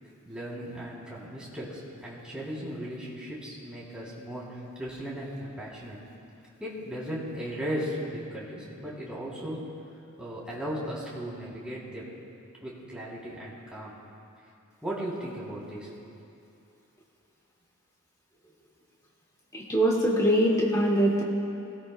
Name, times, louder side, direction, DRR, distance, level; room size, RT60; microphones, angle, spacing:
voice 1, 0.2-6.0 6.6-9.6 10.2-12.1 12.6-14.0 14.8-15.9, equal, 5° right, -7 dB, 3.3 m, -36 dB
voice 2, 19.5-21.2, right 1 dB, 15° left, -4 dB, 2.2 m, -23 dB
27.5 x 18.0 x 2.3 m, 2.7 s
head